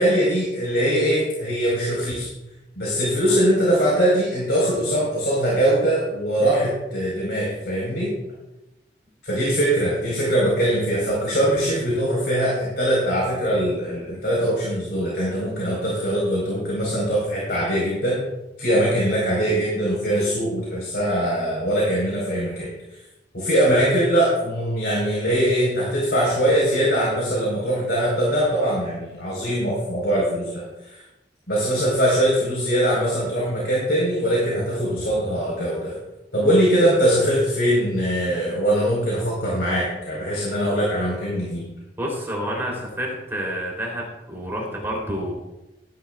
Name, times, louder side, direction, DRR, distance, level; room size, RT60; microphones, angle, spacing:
voice 1, 0.0-2.3 2.8-8.1 9.2-18.2 18.6-22.7 23.3-31.0 31.5-35.9 36.3-41.6, equal, 65° left, -4 dB, 4.4 m, -22 dB
voice 2, 42.0-45.3, equal, 15° right, -3 dB, 3.3 m, -29 dB
18.0 x 12.0 x 2.4 m, 0.98 s
head